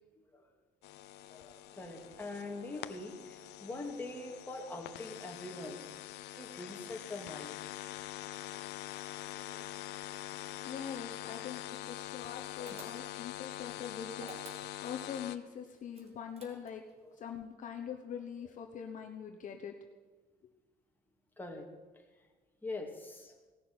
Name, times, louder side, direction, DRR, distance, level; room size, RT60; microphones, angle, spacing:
voice 1, 0.1-0.5 1.2-7.6 12.6-13.0 17.0-17.2 21.4-21.7 21.9-22.0 22.6-23.4, left 2 dB, 10° left, 0 dB, 2.4 m, -44 dB
sound 1, 0.8-15.4, left 15 dB, 85° left, 0.6 m, -44 dB
voice 2, 10.6-16.8 17.1-19.7, left 7 dB, 50° left, 3 dB, 1.1 m, -43 dB
sound 2, 12.7-13.3 14.1-15.0 15.9-16.9, right 3 dB, 35° right, 2.5 m, -52 dB
17.0 x 6.7 x 7.8 m, 1.3 s
cardioid pair, 110°, 17 cm